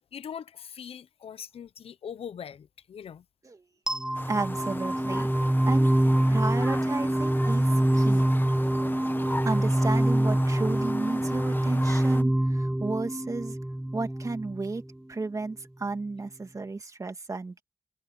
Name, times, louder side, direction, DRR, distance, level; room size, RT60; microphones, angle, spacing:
voice 1, 0.1-3.2, left 8 dB, 65° left, 1.0 m, -41 dB
sound 1, 3.9-14.8, right 1 dB, 5° right, 0.4 m, -25 dB
sound 2, 4.1-12.2, left 2 dB, 20° left, 1.3 m, -39 dB
voice 2, 4.2-5.3 5.6-5.9 6.3-8.3 9.4-13.6 13.9-14.8 15.1-17.6, right 3 dB, 30° right, 2.5 m, -33 dB
cardioid pair, 85°, 11 cm